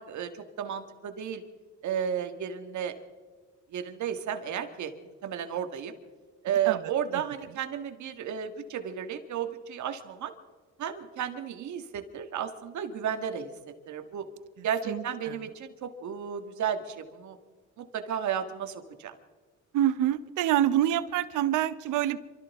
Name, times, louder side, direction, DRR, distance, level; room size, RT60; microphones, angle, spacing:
voice 1, 0.0-1.4 1.8-2.9 3.7-4.9 5.2-5.9 6.4-10.3 10.8-13.5 13.9-14.2 14.6-17.4 17.8-19.1, right 8 dB, 70° right, 7 dB, 1.7 m, -33 dB
voice 2, 14.6-15.4 19.7-22.2, right 12 dB, 90° right, 15 dB, 0.8 m, -27 dB
27.5 x 13.5 x 3.6 m, 1.4 s
cardioid pair, 90°, 30 cm